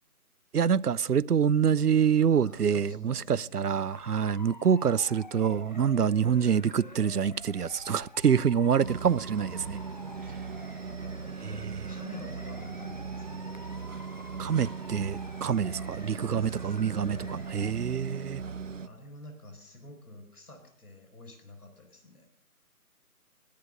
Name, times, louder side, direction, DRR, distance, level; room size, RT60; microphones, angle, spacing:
voice 1, 0.5-9.8 11.4-11.9 14.4-18.4, right 7 dB, 85° right, 0.7 m, -26 dB
voice 2, 2.4-3.6 10.2-13.6 16.1-16.6 17.1-18.0 18.7-22.3, left 1 dB, 75° left, 4.8 m, -49 dB
Motor vehicle (road) / Siren, 3.9-17.7, left 2 dB, 30° left, 1.0 m, -48 dB
sound 1, 8.8-18.9, right 5 dB, 55° right, 0.7 m, -39 dB
21.0 x 10.5 x 6.5 m
figure-of-eight pair, 165°, 45 cm